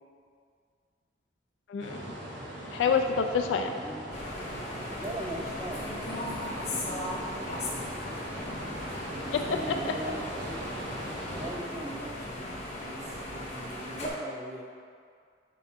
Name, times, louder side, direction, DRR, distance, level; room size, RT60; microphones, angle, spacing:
voice 1, 1.7-2.0 2.7-3.7 9.3-10.0, left 6 dB, 80° left, 5 dB, 0.3 m, -27 dB
sound 1, 1.8-11.5, equal, 80° right, 1.2 m, -40 dB
voice 2, 3.5-4.0 5.0-8.1 9.2-10.6 11.3-14.6, right 1 dB, 20° right, -1 dB, 0.5 m, -41 dB
sound 2, 4.1-14.1, left 1 dB, 35° left, 0.8 m, -37 dB
5.0 x 4.6 x 4.2 m, 2.2 s
head